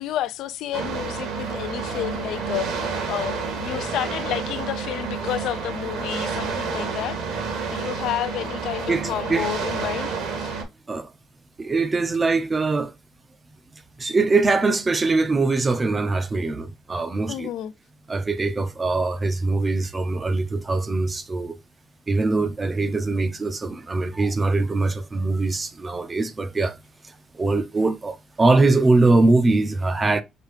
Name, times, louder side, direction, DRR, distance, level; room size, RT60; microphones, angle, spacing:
voice 1, 0.0-7.2 7.7-10.5 17.3-17.7, left 12 dB, 75° left, 0.4 m, -30 dB
sound 1, 0.7-10.6, right 5 dB, 75° right, 1.7 m, -29 dB
voice 2, 8.9-9.5 10.9-11.1 11.6-12.9 14.0-17.5 18.1-21.6 22.1-26.7 27.4-30.2, right 3 dB, 20° right, 0.5 m, -22 dB
6.0 x 2.8 x 3.2 m
cardioid pair, 170°, 0 cm